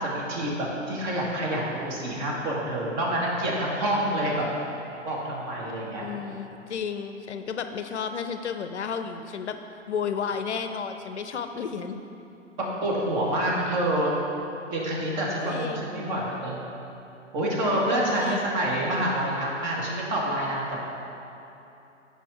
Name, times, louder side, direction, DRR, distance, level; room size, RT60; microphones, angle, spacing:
voice 1, 0.0-4.5 5.0-6.0 12.6-14.2 14.7-16.6 17.3-20.8, right 1 dB, 35° right, -4 dB, 1.6 m, -27 dB
voice 2, 6.0-9.6 9.9-12.0 15.4-16.1 18.2-18.5, left 6 dB, 65° left, 8 dB, 0.5 m, -32 dB
7.5 x 5.3 x 4.8 m, 2.9 s
figure-of-eight pair, 115°, 38 cm